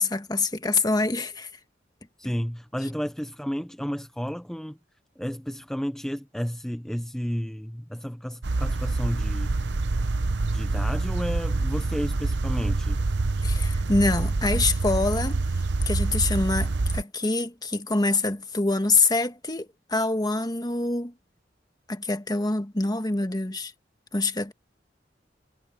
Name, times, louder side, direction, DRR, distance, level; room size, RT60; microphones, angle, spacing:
voice 1, 0.0-1.5 13.4-15.4 15.9-21.1 21.9-23.7 24.1-24.5, left 3 dB, 20° left, 1.5 m, -25 dB
voice 2, 2.2-4.8 5.2-9.6 10.4-13.0, equal, 5° left, 0.6 m, -32 dB
sound 1, 8.4-17.0, right 3 dB, 70° right, 0.8 m, -26 dB
head